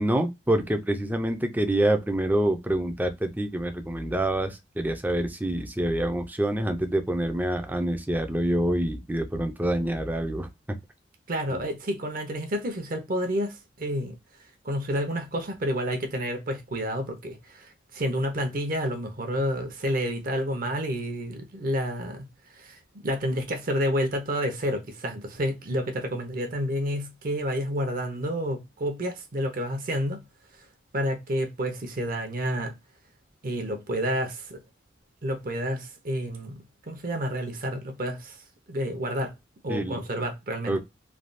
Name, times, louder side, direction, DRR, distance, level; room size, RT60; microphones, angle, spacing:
voice 1, 0.0-10.8 11.5-11.6 39.7-40.0 40.7-40.8, right 1 dB, 10° right, 0.5 m, -26 dB
voice 2, 11.3-14.2 14.6-30.2 30.6-30.7 30.9-32.8 33.4-34.6 35.2-39.3 39.6-40.8, equal, 50° right, 0.7 m, -30 dB
3.2 x 2.3 x 2.5 m
head